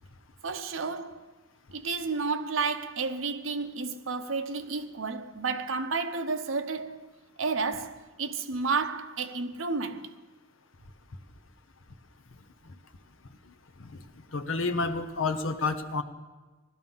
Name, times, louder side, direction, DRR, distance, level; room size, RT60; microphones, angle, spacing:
voice 1, 0.4-1.3 1.7-7.1 7.4-10.1, right 4 dB, 75° right, 0.9 m, -31 dB
voice 2, 14.3-16.0, left 3 dB, 75° left, 1.1 m, -29 dB
17.0 x 12.5 x 5.6 m
head